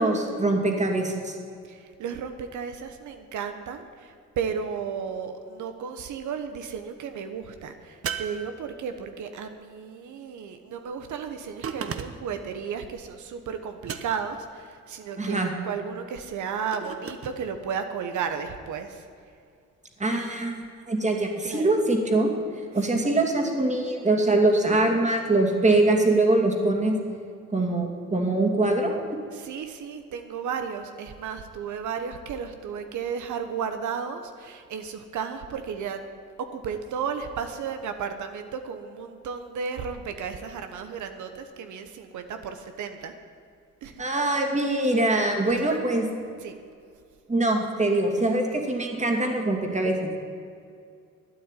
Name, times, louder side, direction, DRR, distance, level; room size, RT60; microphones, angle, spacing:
voice 1, 0.0-1.3 15.2-15.5 20.0-22.3 22.7-27.0 27.5-29.0 44.0-46.0 47.3-50.1, right 2 dB, 25° right, 2 dB, 2.6 m, -23 dB
voice 2, 1.6-19.1 21.4-21.7 22.9-23.0 29.3-36.0 36.4-43.1 43.8-44.0 45.6-45.8 46.4-46.5, right 6 dB, 75° right, 7 dB, 1.2 m, -34 dB
sound 1, 8.0-9.1 11.6-12.4 13.8-14.5 16.7-17.4, right 7 dB, 50° right, 1.1 m, -35 dB
12.5 x 9.6 x 9.1 m, 2.4 s
cardioid pair, 90°, 30 cm